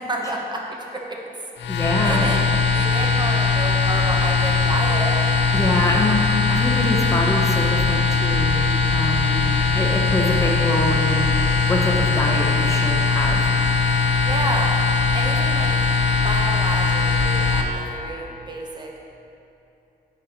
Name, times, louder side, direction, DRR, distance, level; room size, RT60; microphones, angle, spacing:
voice 1, 0.1-1.0 1.6-2.4 2.7-5.2 14.3-14.8 15.1-19.1, right 2 dB, 25° right, 0 dB, 0.8 m, -30 dB
sound 1, 1.6-17.6, left 4 dB, 85° left, 0.6 m, -20 dB
voice 2, 1.7-2.2 5.5-8.5 8.9-9.4 9.7-11.3 11.7-13.4, left 1 dB, 15° left, -1 dB, 0.8 m, -24 dB
10.5 x 4.1 x 2.9 m, 2.8 s
cardioid pair, 120°, 18 cm